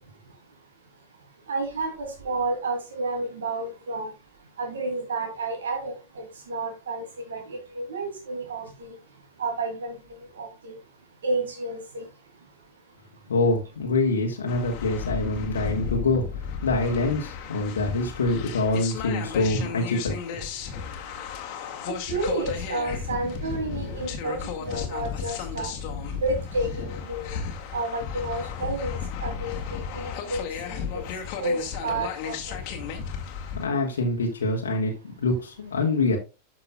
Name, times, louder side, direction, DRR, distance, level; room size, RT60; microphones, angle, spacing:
voice 1, 1.5-4.1 4.6-8.6 9.4-10.0 10.4-10.7 11.2-12.0 21.9-25.7 26.2-27.3 27.7-31.0 31.4-32.6, right 2 dB, 65° right, 3 dB, 2.7 m, -31 dB
voice 2, 13.3-20.2 33.6-36.2, left 2 dB, 65° left, 0 dB, 1.7 m, -25 dB
sound 1, 14.5-33.7, left 6 dB, 45° left, 2.0 m, -34 dB
12.5 x 5.9 x 2.3 m, 0.28 s
figure-of-eight pair, 90°, 0 cm